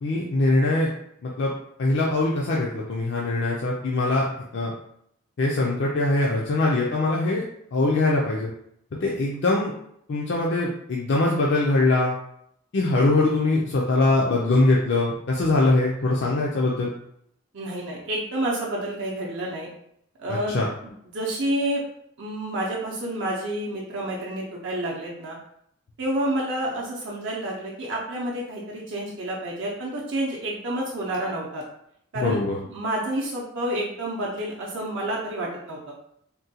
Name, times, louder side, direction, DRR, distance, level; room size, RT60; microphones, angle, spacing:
voice 1, 0.0-0.9 1.2-1.5 1.8-4.3 4.5-4.7 5.4-7.4 7.7-8.5 9.0-9.7 10.1-12.2 12.7-16.9 20.3-20.7 32.1-32.6, left 2 dB, 50° left, -3 dB, 0.4 m, -22 dB
voice 2, 17.5-19.7 20.2-20.6 20.8-21.8 22.2-25.4 26.0-31.6 32.1-32.4 32.7-35.8, right 1 dB, 55° right, -4 dB, 0.5 m, -29 dB
3.7 x 2.2 x 2.7 m, 0.72 s
head